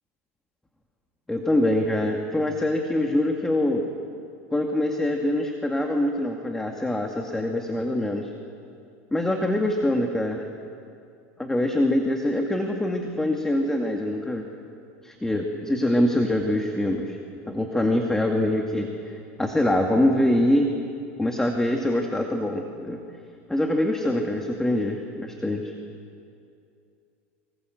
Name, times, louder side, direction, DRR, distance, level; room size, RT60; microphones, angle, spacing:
voice 1, 1.3-3.9 4.5-8.3 9.1-10.4 11.4-14.4 15.0-17.2 17.5-20.7 21.2-23.0 23.5-25.7, left 1 dB, 5° left, 2 dB, 2.2 m, -24 dB
25.0 x 25.0 x 8.0 m, 2.5 s
supercardioid pair, 110°, 7 cm